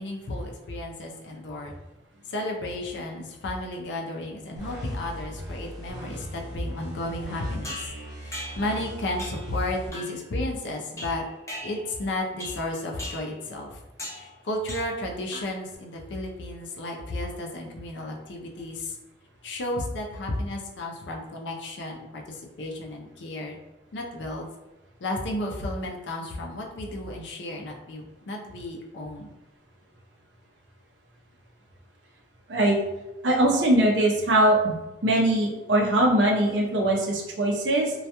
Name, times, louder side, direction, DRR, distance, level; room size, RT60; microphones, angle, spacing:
voice 1, 0.0-1.7 2.3-7.9 8.2-11.2 11.6-13.8 14.1-18.9 19.4-23.6 23.9-24.5 25.0-29.3, left 1 dB, 70° left, 0 dB, 0.5 m, -33 dB
sound 1, 4.6-9.9, equal, 20° right, 0.8 m, -39 dB
sound 2, 7.6-8.8 9.2-9.5 9.9-10.3 11.0-12.0 12.4-12.7 13.0-13.4 14.0-14.3 14.7-15.0 15.3-15.7, left 1 dB, 15° left, 0.4 m, -39 dB
voice 2, 33.2-34.8 35.0-37.9, right 1 dB, 75° right, -1 dB, 0.6 m, -21 dB
2.2 x 2.2 x 2.8 m, 1.0 s
head